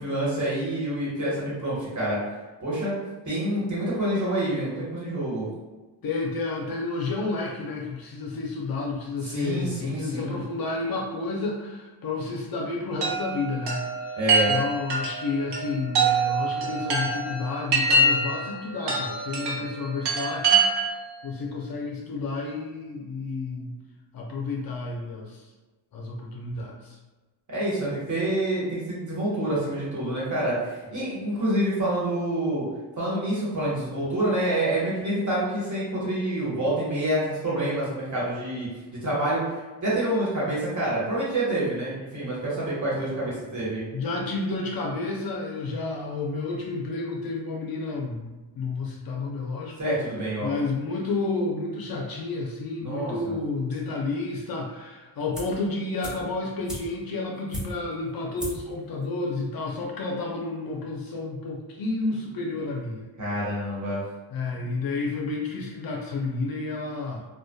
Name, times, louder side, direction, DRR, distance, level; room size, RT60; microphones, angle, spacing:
voice 1, 0.0-2.2 2.6-2.9 3.2-5.5 9.2-10.4 14.2-14.5 27.5-32.6 33.0-38.7 39.0-39.4 39.8-43.8 49.8-50.5 52.8-53.3 63.2-64.0, right 1 dB, 40° right, -7 dB, 1.4 m, -27 dB
voice 2, 6.0-13.8 14.5-20.9 21.2-23.7 24.1-25.4 25.9-27.0 43.9-49.8 50.4-63.1 64.3-67.3, left 3 dB, 50° left, -1 dB, 0.5 m, -31 dB
Chime, 13.0-21.1, right 3 dB, 60° right, 0.8 m, -25 dB
sound 1, 55.3-55.7 56.0-58.0 58.4-58.7 59.0-59.1, equal, ahead, 0.9 m, -37 dB
2.5 x 2.3 x 2.2 m, 1.2 s
cardioid pair, 80°, 47 cm